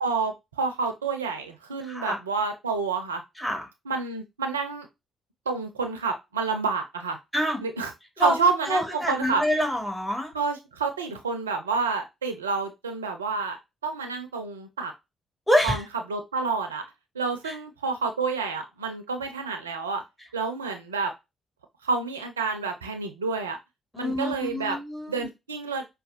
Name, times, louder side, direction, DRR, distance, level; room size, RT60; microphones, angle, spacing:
voice 1, 0.0-3.2 3.9-4.9 5.5-7.2 7.6-7.9 8.2-9.4 10.3-13.6 13.8-14.9 15.6-16.8 17.1-20.0 20.3-21.1 21.8-23.6 24.0-24.8 25.1-25.8, right 4 dB, 85° right, 0.5 m, -29 dB
voice 2, 1.9-2.2 3.4-3.6 7.3-7.6 8.2-8.4 8.7-10.3 15.5-15.8 17.5-17.6 23.9-25.3, equal, 10° left, 1.6 m, -26 dB
5.1 x 2.3 x 2.4 m
figure-of-eight pair, 40°, 0 cm